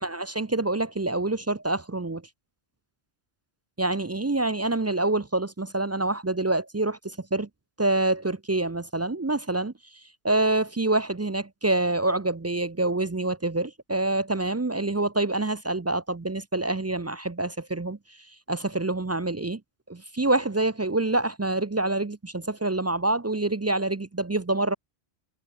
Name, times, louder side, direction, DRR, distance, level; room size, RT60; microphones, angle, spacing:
voice 1, 0.0-2.2 3.8-7.5 7.8-9.7 10.2-18.0 18.5-19.6 19.9-24.7, right 2 dB, 25° right, 0.3 m, -26 dB
omnidirectional pair, 1.1 m